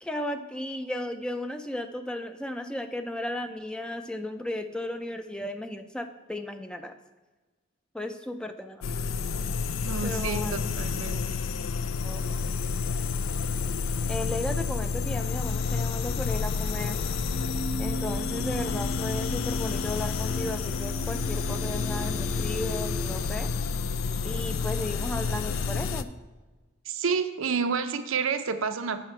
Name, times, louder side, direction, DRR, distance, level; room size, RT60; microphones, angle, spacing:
voice 1, 0.0-6.9 7.9-8.8 10.0-10.5 12.0-12.3 14.1-17.0 17.8-23.5 24.2-26.1, left 1 dB, 5° left, 7 dB, 0.3 m, -35 dB
sound 1, 8.8-26.0, left 5 dB, 75° left, 0.4 m, -30 dB
voice 2, 9.8-11.4 26.9-29.0, right 5 dB, 75° right, 8 dB, 0.5 m, -29 dB
Keyboard (musical), 17.2-23.2, right 2 dB, 40° left, 1.0 m, -38 dB
7.5 x 5.6 x 4.4 m, 1.2 s
head